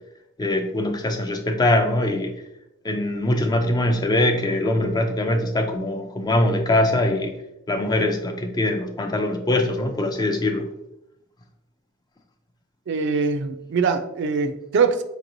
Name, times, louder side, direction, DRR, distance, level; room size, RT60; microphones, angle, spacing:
voice 1, 0.4-2.3 2.8-7.3 7.7-10.7, left 1 dB, 20° left, 5 dB, 0.3 m, -22 dB
voice 2, 12.9-15.0, right 5 dB, 55° right, 7 dB, 0.3 m, -22 dB
4.6 x 2.9 x 2.6 m, 0.88 s
head